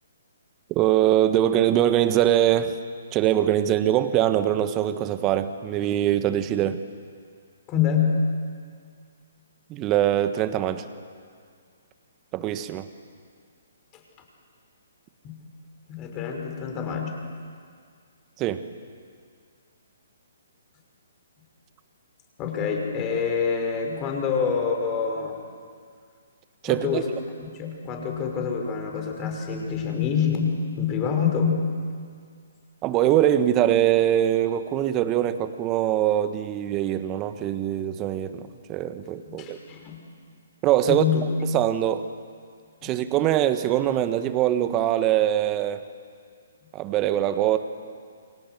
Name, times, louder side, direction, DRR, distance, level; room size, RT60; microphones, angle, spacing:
voice 1, 0.7-2.8 3.1-6.8 9.7-10.8 12.3-12.9 18.4-18.7 26.6-27.0 32.8-39.6 40.6-41.0 41.5-42.1 42.8-45.9 46.7-47.6, right 12 dB, 25° right, 11 dB, 1.5 m, -23 dB
voice 2, 7.7-8.2 15.2-15.4 15.9-17.2 22.4-25.4 26.6-27.1 27.5-31.7 39.3-40.0 40.9-41.2 42.8-42.9, left 6 dB, 25° left, 2 dB, 5.9 m, -26 dB
28.5 x 25.5 x 8.0 m, 2.1 s
figure-of-eight pair, 130°, 0 cm